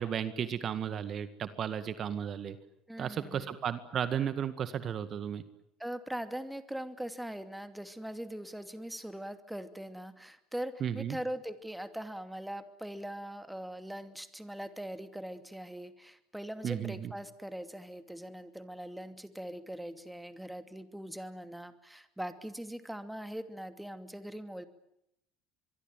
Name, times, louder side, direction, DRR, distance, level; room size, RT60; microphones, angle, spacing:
voice 1, 0.0-2.6 3.0-5.4 10.8-11.2 16.6-17.1, right 8 dB, 45° right, 12 dB, 1.9 m, -34 dB
voice 2, 2.9-3.6 5.8-24.7, right 1 dB, 5° right, 10 dB, 2.6 m, -41 dB
25.0 x 23.0 x 9.3 m, 0.78 s
hypercardioid pair, 70°, 0 cm